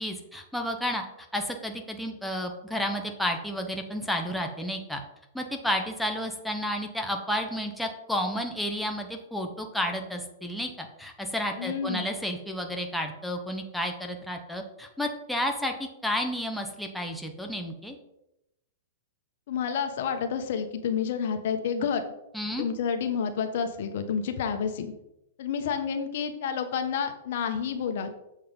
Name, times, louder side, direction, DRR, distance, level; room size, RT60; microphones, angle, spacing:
voice 1, 0.0-5.0 5.3-18.0 22.3-22.7, equal, ahead, 2 dB, 0.9 m, -31 dB
voice 2, 11.6-12.1 19.5-22.0 22.6-24.9 25.4-28.1, left 7 dB, 65° left, 7 dB, 1.1 m, -29 dB
7.4 x 4.7 x 5.3 m, 0.86 s
hypercardioid pair, 130°, 0 cm